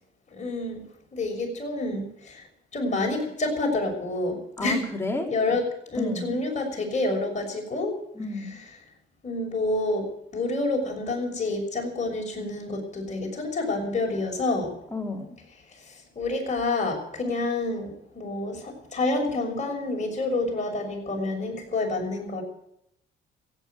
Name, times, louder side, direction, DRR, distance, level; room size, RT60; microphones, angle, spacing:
voice 1, 0.4-0.8 1.1-2.1 2.7-4.8 5.3-7.9 9.2-10.1 10.3-14.7 16.2-22.4, left 2 dB, 35° left, 1 dB, 6.2 m, -28 dB
voice 2, 4.6-5.5 6.0-6.3 8.1-8.6 14.9-15.4, left 2 dB, 10° left, 0 dB, 4.1 m, -32 dB
15.5 x 9.1 x 9.2 m, 0.78 s
cardioid pair, 90°, 20 cm